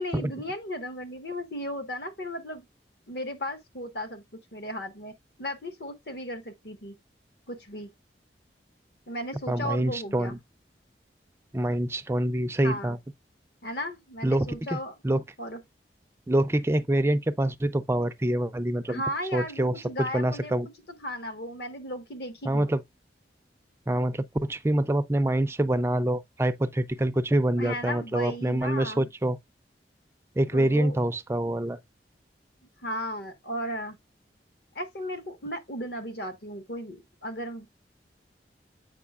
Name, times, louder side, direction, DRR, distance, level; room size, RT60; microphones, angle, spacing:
voice 1, 0.0-2.6 3.1-4.2 4.5-5.1 5.4-6.9 7.5-7.9 9.1-10.4 12.6-13.0 13.6-15.0 15.4-15.6 18.9-20.6 21.0-22.7 27.6-29.1 30.5-31.0 32.8-34.0 34.7-37.9, equal, 60° left, 1.4 m, -35 dB
voice 2, 9.5-10.4 11.5-13.0 14.2-14.7 15.0-15.2 16.3-19.0 19.3-20.7 22.4-22.8 23.9-29.4 30.4-31.8, right 1 dB, 15° right, 0.4 m, -26 dB
8.2 x 5.0 x 2.4 m
head